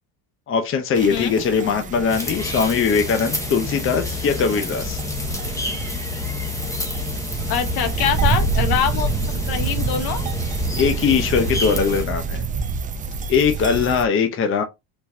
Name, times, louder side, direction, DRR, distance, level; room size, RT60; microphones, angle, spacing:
voice 1, 0.5-5.0 10.8-12.4 13.3-14.6, left 6 dB, 30° left, 0.8 m, -20 dB
sound 1, 0.9-14.0, right 5 dB, 20° right, 0.4 m, -27 dB
sound 2, 2.1-12.0, left 2 dB, 5° left, 1.0 m, -29 dB
voice 2, 7.5-9.1 9.4-10.2, left 9 dB, 60° left, 1.2 m, -23 dB
4.5 x 4.3 x 2.7 m
cardioid pair, 145°, 42 cm